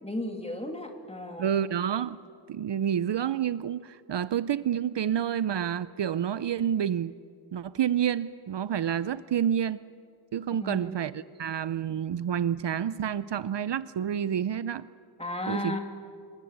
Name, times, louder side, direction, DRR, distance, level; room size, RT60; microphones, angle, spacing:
voice 1, 0.0-1.5 10.6-11.0 15.2-15.8, left 1 dB, 15° left, 3 dB, 2.6 m, -34 dB
voice 2, 1.4-2.2 2.5-7.1 7.5-9.8 10.3-14.9 15.5-15.8, right 9 dB, 60° right, 15 dB, 0.6 m, -29 dB
27.0 x 21.0 x 8.8 m, 2.3 s
wide cardioid pair, 170°, 47 cm